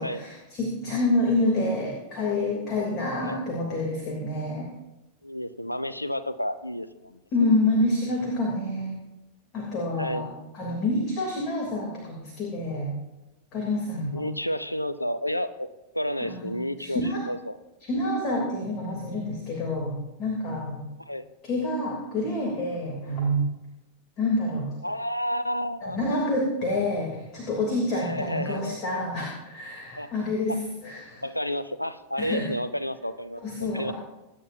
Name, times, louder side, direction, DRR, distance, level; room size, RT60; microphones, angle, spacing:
voice 1, 0.0-4.7 7.3-9.0 9.5-10.3 10.5-12.9 13.5-14.2 16.2-17.2 17.8-20.8 21.4-23.5 24.2-24.7 25.8-30.6 30.8-31.2 32.2-32.5 33.4-33.9, left 1 dB, 35° left, -1 dB, 3.1 m, -27 dB
voice 2, 5.2-7.5 10.0-10.3 14.1-15.7 15.9-17.6 21.0-21.3 24.8-26.0 27.9-28.8 30.0-30.1 30.5-30.6 31.2-33.9, equal, 85° left, 13 dB, 0.6 m, -31 dB
23.0 x 10.0 x 2.7 m, 1.0 s
figure-of-eight pair, 90°, 0 cm